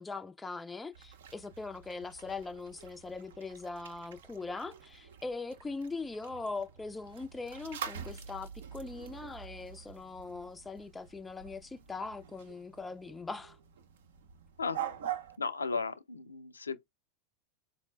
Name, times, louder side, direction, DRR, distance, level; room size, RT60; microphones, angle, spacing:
voice 1, 0.0-13.6, left 3 dB, 15° left, 0.3 m, -41 dB
sound 1, 0.9-15.4, right 9 dB, 70° right, 0.6 m, -46 dB
voice 2, 15.4-16.8, left 4 dB, 85° left, 0.4 m, -35 dB
4.3 x 2.0 x 3.2 m
figure-of-eight pair, 85°, 0 cm